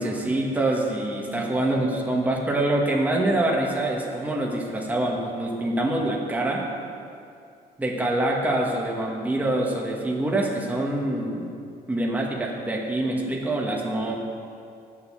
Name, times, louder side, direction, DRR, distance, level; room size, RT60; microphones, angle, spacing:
voice 1, 0.0-6.6 7.8-11.5 11.9-14.1, right 1 dB, 10° right, -1 dB, 1.3 m, -25 dB
8.9 x 7.4 x 7.0 m, 2.5 s
cardioid pair, 110°, 17 cm